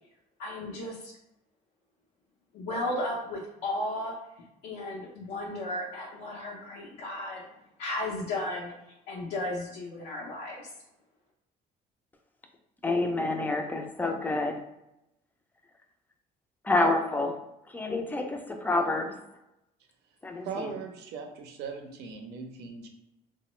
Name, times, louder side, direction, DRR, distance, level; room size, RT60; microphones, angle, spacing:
voice 1, 0.4-1.1 2.5-4.2 4.6-7.5 7.8-8.7 9.1-10.6, left 1 dB, 85° left, -4 dB, 0.6 m, -34 dB
voice 2, 12.8-14.6 16.6-17.4 17.7-19.2 20.2-20.8, left 2 dB, 10° left, 4 dB, 0.4 m, -28 dB
voice 3, 20.4-22.9, right 5 dB, 80° right, 4 dB, 0.6 m, -39 dB
2.9 x 2.0 x 3.0 m, 0.86 s
cardioid pair, 110°, 17 cm